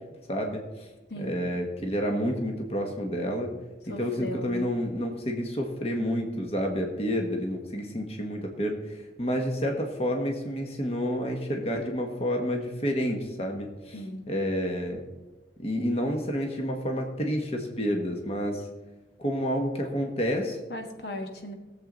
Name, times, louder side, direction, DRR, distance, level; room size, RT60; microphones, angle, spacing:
voice 1, 0.3-0.9 1.2-3.5 3.9-15.0 15.6-18.7 19.2-20.6, equal, 35° left, 2 dB, 1.3 m, -29 dB
voice 2, 1.1-1.4 3.9-4.6 13.9-14.2 20.7-21.5, left 1 dB, 70° left, 4 dB, 1.5 m, -37 dB
19.0 x 7.5 x 3.9 m, 1.1 s
head